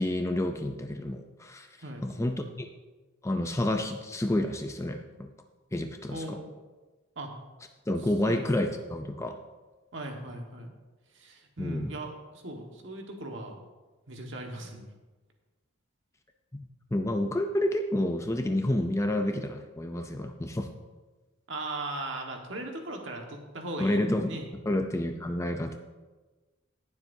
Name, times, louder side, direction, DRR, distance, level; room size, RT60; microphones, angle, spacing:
voice 1, 0.0-1.7 2.0-2.7 3.2-5.3 5.7-6.4 7.9-9.4 11.6-11.9 16.5-20.7 23.8-24.3 24.7-25.8, left 1 dB, 15° left, 6 dB, 0.5 m, -29 dB
voice 2, 6.1-6.5 7.1-7.3 8.2-8.5 9.9-10.7 11.1-13.5 14.1-14.8 21.5-24.5, right 1 dB, 60° right, 2 dB, 1.5 m, -38 dB
19.0 x 7.3 x 2.7 m, 1.2 s
head